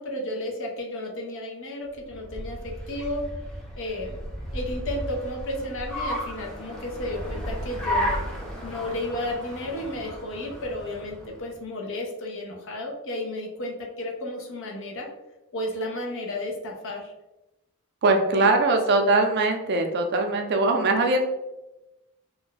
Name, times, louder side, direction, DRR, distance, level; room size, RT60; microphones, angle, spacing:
voice 1, 0.0-3.2 3.8-8.1 8.6-15.1 15.5-17.1 18.4-19.1, left 1 dB, 60° left, 1 dB, 0.6 m, -33 dB
Car, 2.0-11.5, equal, 5° left, 0.6 m, -34 dB
voice 2, 18.0-21.3, right 2 dB, 50° right, 4 dB, 0.4 m, -21 dB
2.6 x 2.1 x 3.8 m, 0.98 s
head